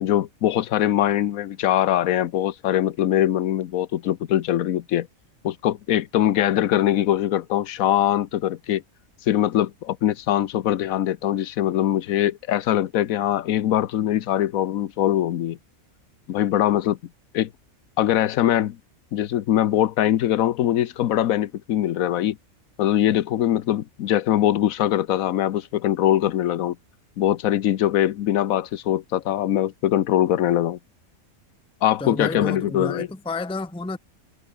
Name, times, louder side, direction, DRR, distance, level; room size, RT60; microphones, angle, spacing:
voice 1, 0.0-5.1 5.4-8.8 9.3-15.6 16.3-17.0 17.3-17.5 18.0-18.8 19.1-22.4 22.8-26.8 27.2-30.8 31.8-33.1, left 12 dB, 75° left, 1.2 m, -22 dB
voice 2, 32.0-34.0, left 3 dB, 5° left, 0.6 m, -30 dB
omnidirectional pair, 1.5 m